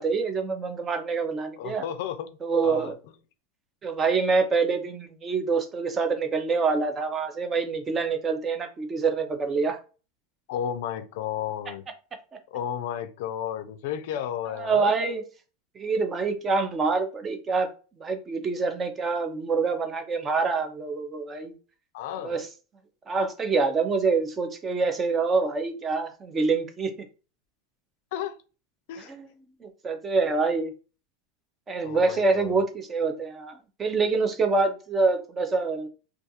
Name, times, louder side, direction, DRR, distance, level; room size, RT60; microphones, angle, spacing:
voice 1, 0.0-1.8 2.4-3.0 3.8-9.8 14.5-15.2 15.8-17.7 18.0-21.5 22.2-22.5 23.1-26.9 29.1-29.3 29.6-30.7 31.7-35.9, right 4 dB, 20° right, 0.4 m, -26 dB
voice 2, 1.6-2.4 2.6-2.9 10.5-11.8 12.5-14.9 21.9-22.4 28.1-28.4 28.9-29.1 31.8-32.6, left 10 dB, 70° left, 0.3 m, -33 dB
2.4 x 2.3 x 2.7 m
supercardioid pair, 145°, 0 cm